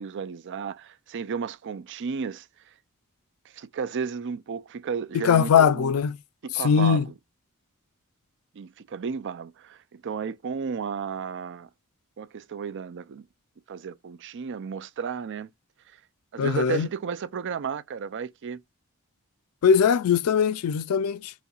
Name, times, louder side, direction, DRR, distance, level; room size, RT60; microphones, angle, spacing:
voice 1, 0.0-2.5 3.5-5.9 6.4-7.1 8.5-11.7 12.2-13.2 13.7-15.5 16.3-18.6, right 6 dB, 55° right, 0.4 m, -33 dB
voice 2, 5.1-6.2 6.6-7.0 16.4-16.9 19.6-21.3, left 7 dB, 90° left, 0.4 m, -21 dB
4.2 x 2.6 x 2.4 m
head